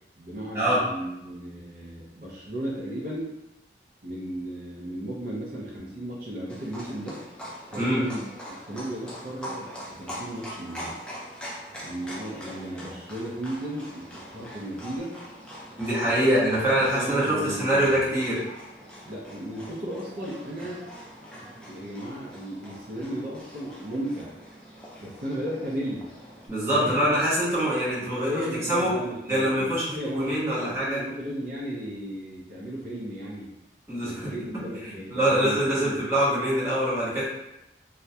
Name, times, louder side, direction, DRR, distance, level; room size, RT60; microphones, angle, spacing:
voice 1, 0.2-3.4 4.0-7.2 7.7-8.3 8.7-9.7 10.0-11.0 11.8-15.1 16.0-16.3 16.8-18.0 19.0-20.8 21.7-24.3 25.0-26.1 26.7-27.0 28.0-33.5 34.0-36.1, right 1 dB, 50° right, -5 dB, 0.5 m, -35 dB
Livestock farm animals working animals, 6.5-26.5, equal, 5° left, 0.4 m, -43 dB
voice 2, 15.8-18.4 26.5-28.4 28.7-28.9 29.3-31.0 33.9-34.3 35.1-37.3, right 1 dB, 15° right, -10 dB, 0.9 m, -24 dB
2.2 x 2.1 x 2.7 m, 0.91 s
head